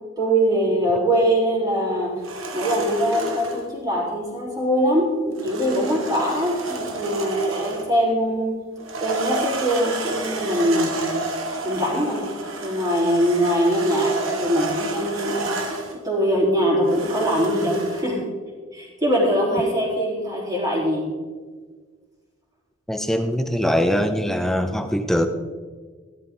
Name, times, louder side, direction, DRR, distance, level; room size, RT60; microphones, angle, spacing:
voice 1, 0.2-2.1 2.5-8.5 9.0-10.9 11.6-12.2 12.6-15.6 16.0-18.2 18.7-21.1, equal, 20° right, -4 dB, 3.9 m, -22 dB
sound 1, 2.2-3.7 5.4-8.0 8.8-16.0 16.9-18.1, right 2 dB, 85° right, 1.9 m, -30 dB
voice 2, 22.9-25.3, equal, ahead, 7 dB, 0.7 m, -22 dB
15.0 x 12.5 x 3.8 m, 1.5 s
head